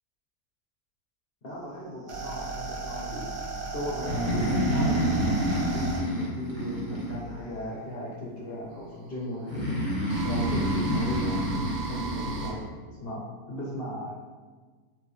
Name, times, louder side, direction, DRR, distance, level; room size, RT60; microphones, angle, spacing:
voice 1, 1.4-3.2 3.7-9.8 10.2-12.6 12.9-14.1, left 1 dB, 50° left, -5 dB, 0.7 m, -37 dB
sound 1, 1.5-7.7 8.7-12.5, right 3 dB, 65° right, 1.1 m, -36 dB
Breathing, 3.9-7.6 9.5-12.6, equal, 20° right, 0.8 m, -28 dB
4.4 x 2.9 x 3.2 m, 1.4 s
omnidirectional pair, 1.8 m